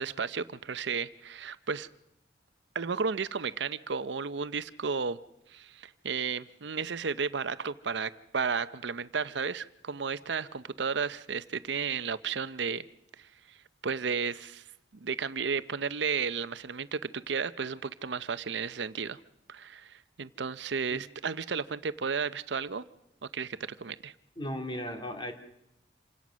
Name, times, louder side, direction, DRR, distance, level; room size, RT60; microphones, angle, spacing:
voice 1, 0.0-1.9 2.7-5.2 5.5-12.8 13.2-13.3 13.8-14.6 15.0-19.2 19.5-22.8 23.3-24.1, right 5 dB, 70° right, 14 dB, 0.7 m, -33 dB
voice 2, 24.4-25.3, equal, 25° left, 5 dB, 2.3 m, -36 dB
27.0 x 17.0 x 6.2 m, 0.83 s
head